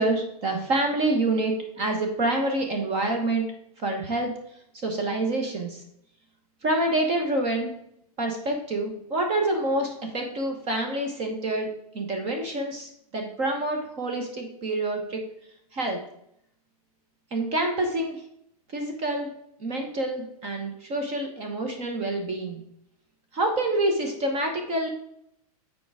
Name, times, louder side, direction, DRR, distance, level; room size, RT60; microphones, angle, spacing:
voice 1, 0.0-3.4 3.8-4.3 4.8-5.8 6.6-7.7 8.2-15.2 15.7-16.0 17.3-18.2 18.7-19.3 19.6-22.6 23.3-24.9, right 2 dB, 30° right, 2 dB, 1.2 m, -27 dB
6.9 x 4.7 x 4.8 m, 0.74 s
hypercardioid pair, 145°, 20 cm